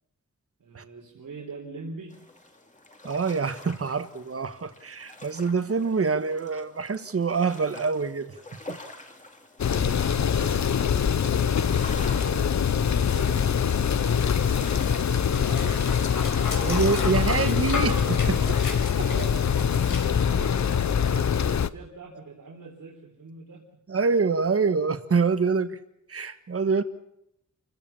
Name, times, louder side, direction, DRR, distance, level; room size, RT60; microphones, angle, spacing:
voice 1, 0.6-2.1 9.7-13.5 13.8-16.6 19.0-20.0 20.3-23.6, right 4 dB, 85° right, 3.8 m, -43 dB
sound 1, 2.1-20.3, left 2 dB, 25° left, 2.6 m, -46 dB
voice 2, 3.0-8.3 8.7-8.8 16.6-18.6 19.0-19.1 23.9-25.8 26.1-26.8, right 5 dB, 45° right, 1.4 m, -26 dB
sound 2, 9.6-21.7, left 8 dB, 60° left, 0.7 m, -24 dB
Dog, 11.4-21.4, left 4 dB, 85° left, 5.2 m, -34 dB
28.5 x 16.5 x 7.1 m
wide cardioid pair, 145°, 31 cm